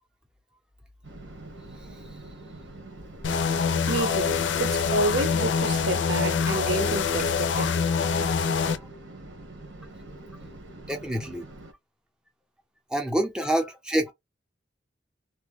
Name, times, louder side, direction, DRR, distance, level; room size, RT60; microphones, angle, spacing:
sound 1, 1.0-11.7, right 2 dB, 85° right, 1.2 m, -44 dB
sound 2, 3.2-8.8, left 6 dB, 70° left, 0.5 m, -25 dB
voice 1, 3.9-7.7, right 2 dB, 65° right, 0.7 m, -29 dB
voice 2, 8.2-8.9 10.9-11.5 12.9-14.1, right 1 dB, 5° right, 0.6 m, -28 dB
3.2 x 2.1 x 3.4 m
head